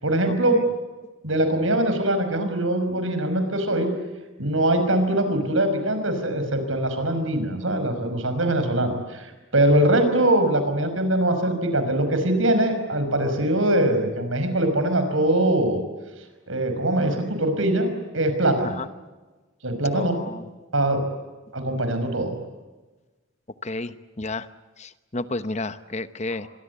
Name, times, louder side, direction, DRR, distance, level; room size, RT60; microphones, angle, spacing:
voice 1, 0.0-0.6 1.2-3.9 4.4-15.8 16.5-17.9 18.1-18.8 19.6-20.1 20.7-21.0 21.5-22.3, right 1 dB, 75° right, 8 dB, 5.7 m, -22 dB
voice 2, 19.9-20.5 23.6-24.5 24.8-26.5, left 2 dB, 35° left, 12 dB, 1.0 m, -31 dB
26.0 x 23.5 x 8.3 m, 1.2 s
head